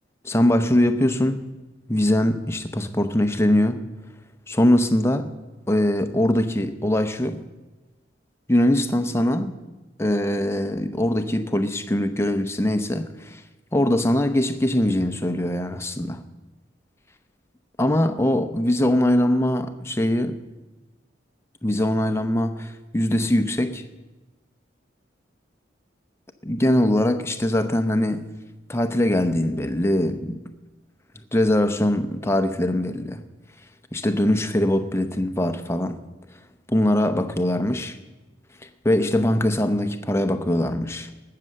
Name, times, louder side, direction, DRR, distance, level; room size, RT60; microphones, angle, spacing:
voice 1, 0.2-1.5 1.9-3.8 4.5-5.3 5.7-7.4 8.5-9.5 10.0-13.4 13.7-16.2 17.8-20.4 21.6-23.8 26.4-28.3 28.7-30.5 31.3-33.2 33.9-36.0 36.7-38.0 38.8-41.1, left 1 dB, 15° left, 9 dB, 0.7 m, -22 dB
19.0 x 6.7 x 7.5 m, 1.1 s
head